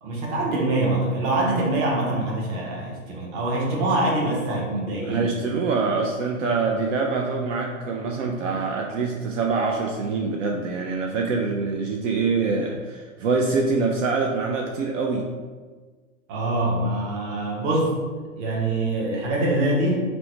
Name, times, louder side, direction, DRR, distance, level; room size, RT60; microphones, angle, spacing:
voice 1, 0.0-5.3 16.3-18.0 18.4-20.0, right 2 dB, 35° right, -3 dB, 0.9 m, -24 dB
voice 2, 5.0-15.3, right 4 dB, 65° right, 1 dB, 0.5 m, -25 dB
3.0 x 2.1 x 4.0 m, 1.4 s
hypercardioid pair, 125°, 40 cm